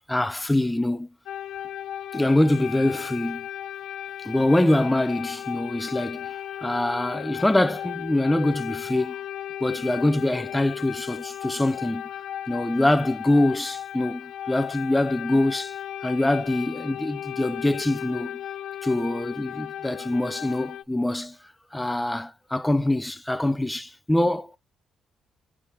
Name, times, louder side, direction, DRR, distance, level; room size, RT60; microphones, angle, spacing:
voice 1, 0.1-1.1 2.1-3.5 4.2-6.3 6.6-9.2 9.6-12.0 12.5-15.7 16.0-18.4 18.8-21.4 21.7-24.5, left 1 dB, 10° left, 0.4 m, -24 dB
sound 1, 1.3-20.8, left 11 dB, 85° left, 0.3 m, -35 dB
4.7 x 3.3 x 2.8 m
cardioid pair, 90°, 0 cm